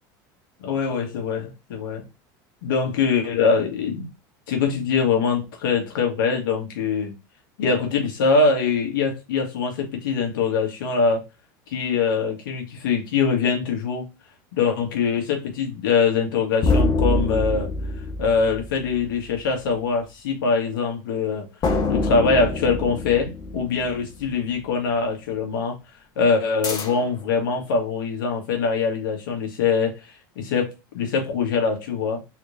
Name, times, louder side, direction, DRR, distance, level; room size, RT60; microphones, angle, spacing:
voice 1, 0.6-2.0 2.6-4.1 4.5-7.1 7.6-11.2 11.7-14.1 14.5-17.7 18.2-21.5 21.9-25.8 26.2-29.9 30.4-32.2, left 5 dB, 90° left, 1.7 m, -23 dB
sound 1, 16.6-19.4 21.6-24.3 26.6-27.3, left 2 dB, 35° left, 1.2 m, -25 dB
4.1 x 3.1 x 2.7 m
supercardioid pair, 110°, 11 cm